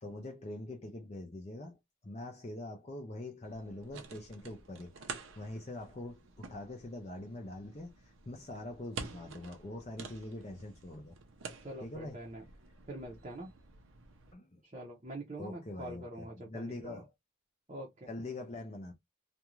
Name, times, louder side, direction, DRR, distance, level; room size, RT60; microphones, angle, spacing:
voice 1, 0.0-11.2 11.8-12.2 14.3-14.6 15.4-17.1 18.1-18.9, left 2 dB, 30° left, 0.5 m, -44 dB
sound 1, 3.4-14.3, right 4 dB, 80° right, 0.6 m, -49 dB
voice 2, 11.6-12.4 12.9-13.5 14.6-17.0 17.7-18.1, right 1 dB, 30° right, 0.7 m, -44 dB
2.5 x 2.3 x 3.0 m
head